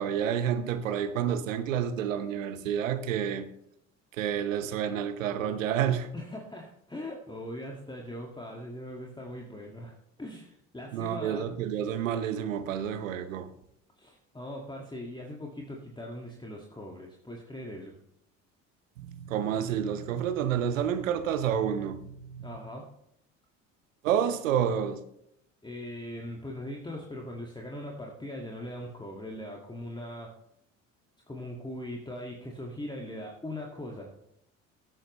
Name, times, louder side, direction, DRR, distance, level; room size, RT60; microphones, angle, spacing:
voice 1, 0.0-3.5 4.2-6.1 10.9-13.5 19.0-22.6 24.0-25.0, right 9 dB, 85° right, 0.9 m, -29 dB
voice 2, 6.1-11.5 14.0-18.0 22.4-22.9 25.6-30.3 31.3-34.1, left 1 dB, 10° left, 1.9 m, -40 dB
16.5 x 9.0 x 3.1 m
hypercardioid pair, 60°, 38 cm